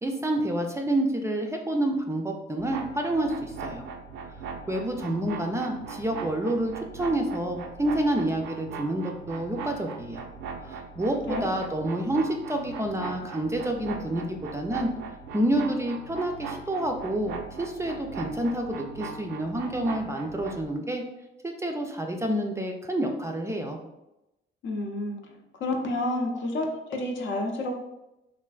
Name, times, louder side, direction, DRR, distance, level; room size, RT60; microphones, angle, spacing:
voice 1, 0.0-3.9 4.7-10.3 10.6-14.9 15.3-21.0 21.4-23.8, right 1 dB, 15° right, 3 dB, 0.3 m, -28 dB
sound 1, 2.6-20.7, right 5 dB, 85° right, 0.4 m, -39 dB
voice 2, 24.6-25.2 25.6-27.7, left 2 dB, 70° left, 2 dB, 0.6 m, -29 dB
3.2 x 2.4 x 2.3 m, 0.93 s
cardioid pair, 90°, 20 cm